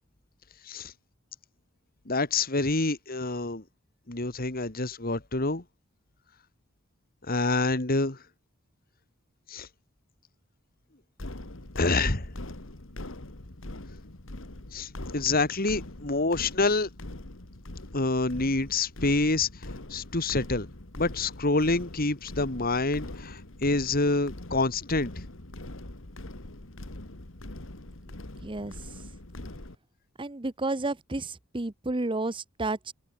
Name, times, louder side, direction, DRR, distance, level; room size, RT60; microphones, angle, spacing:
voice 1, 2.1-3.6 4.1-5.6 7.3-8.2 9.5-9.7 11.8-12.3 14.7-16.9 17.9-19.5 19.9-20.7 21.0-25.1, left 3 dB, 45° left, 2.3 m, -27 dB
sound 1, 11.2-29.8, left 1 dB, 65° left, 2.2 m, -42 dB
voice 2, 28.4-28.7 30.2-32.9, right 2 dB, 25° right, 0.9 m, -31 dB
open air
head